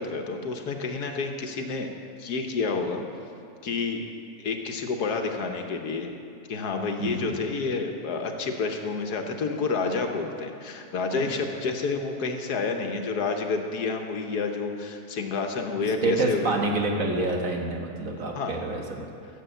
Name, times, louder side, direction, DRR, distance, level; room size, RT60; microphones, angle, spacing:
voice 1, 0.0-1.9 2.2-3.0 3.6-4.1 4.4-6.1 6.5-16.5 18.3-18.5, left 4 dB, 90° left, 4 dB, 1.6 m, -29 dB
voice 2, 16.0-19.1, right 2 dB, 60° right, 1 dB, 1.8 m, -27 dB
14.0 x 7.4 x 8.2 m, 2.4 s
omnidirectional pair, 1.6 m